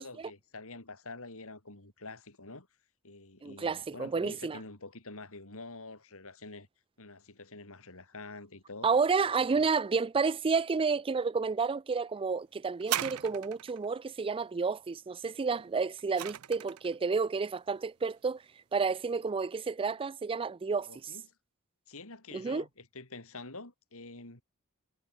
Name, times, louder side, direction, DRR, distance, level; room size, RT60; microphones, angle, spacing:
voice 1, 0.0-2.7 3.0-6.7 7.0-8.9 9.5-9.7 20.9-21.2 21.9-24.4, left 3 dB, 70° left, 4.9 m, -47 dB
voice 2, 3.4-4.6 8.8-18.4 18.7-21.1 22.3-22.6, right 5 dB, 25° right, 0.4 m, -30 dB
sound 1, 12.8-13.9 15.6-16.9 17.8-17.9, right 11 dB, 75° right, 0.6 m, -37 dB
head